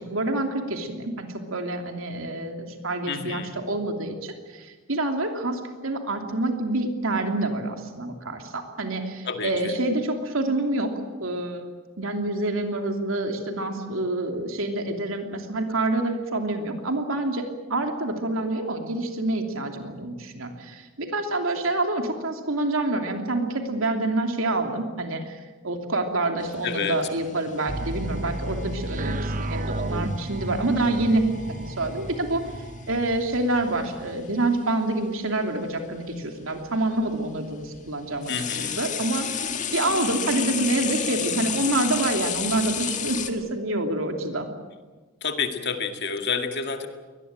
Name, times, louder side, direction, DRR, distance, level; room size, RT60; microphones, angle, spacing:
voice 1, 0.0-10.9 11.2-11.7 12.0-32.4 32.9-38.3 38.8-44.5, right 2 dB, 80° right, 4 dB, 2.9 m, -27 dB
voice 2, 3.1-3.6 9.3-9.8 26.6-27.0 38.3-38.8 45.2-46.9, left 5 dB, 55° left, 6 dB, 2.0 m, -29 dB
sound 1, 26.4-34.6 35.7-35.8 36.6-43.3, left 8 dB, 35° left, 1.9 m, -33 dB
sound 2, 27.7-34.4, right 1 dB, 40° right, 1.0 m, -33 dB
23.0 x 19.5 x 8.9 m, 1.3 s
head